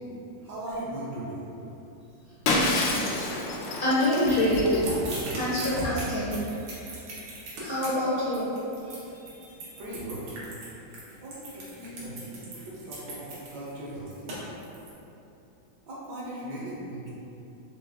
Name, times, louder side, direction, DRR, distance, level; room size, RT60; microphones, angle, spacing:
voice 1, 0.3-1.5 9.8-10.3 11.2-14.3 15.9-17.1, right 1 dB, 65° right, -6 dB, 1.3 m, -38 dB
Shatter, 2.5-5.1, left 2 dB, 75° left, 1.2 m, -28 dB
voice 2, 3.8-4.8 5.1-6.4 6.9-7.0 7.6-8.5, left 1 dB, 60° left, -8 dB, 1.0 m, -26 dB
sound 1, 4.3-14.9, right 1 dB, 85° right, 2.0 m, -37 dB
5.0 x 3.0 x 3.4 m, 2.9 s
omnidirectional pair, 2.3 m